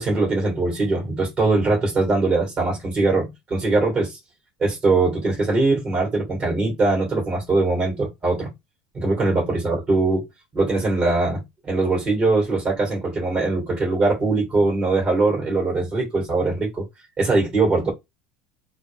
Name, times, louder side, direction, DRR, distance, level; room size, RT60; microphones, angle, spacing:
voice 1, 0.0-4.2 4.6-8.5 8.9-10.3 10.5-16.9 17.2-17.9, right 3 dB, 25° right, 2.4 m, -21 dB
4.2 x 2.2 x 3.6 m
cardioid pair, 150°, 2 cm